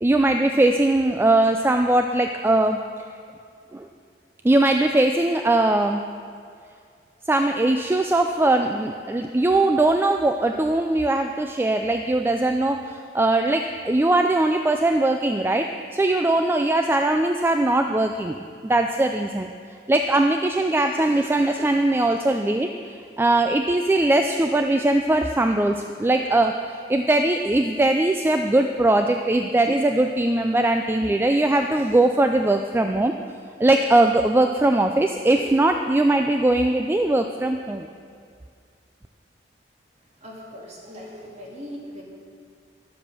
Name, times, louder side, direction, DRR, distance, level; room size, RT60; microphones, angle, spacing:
voice 1, 0.0-2.8 3.7-3.9 4.4-6.0 7.3-19.5 19.9-22.7 23.2-33.1 33.6-37.9, right 2 dB, 15° right, 5 dB, 0.3 m, -20 dB
voice 2, 40.2-42.0, equal, 40° right, -3 dB, 2.2 m, -39 dB
11.5 x 7.7 x 6.1 m, 2.2 s
head